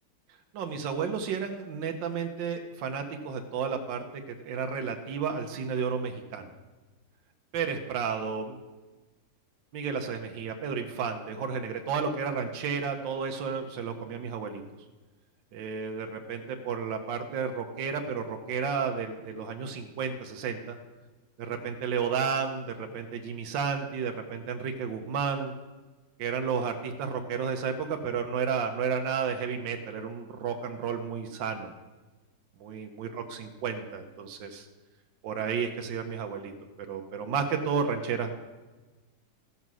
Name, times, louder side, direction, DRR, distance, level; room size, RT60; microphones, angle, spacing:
voice 1, 0.5-6.5 7.5-8.6 9.7-14.6 15.5-20.8 21.4-25.5 26.2-31.7 32.6-34.7 35.2-36.5 36.9-38.4, right 6 dB, 80° right, 4 dB, 1.6 m, -32 dB
15.0 x 5.6 x 6.1 m, 1.2 s
omnidirectional pair, 2.0 m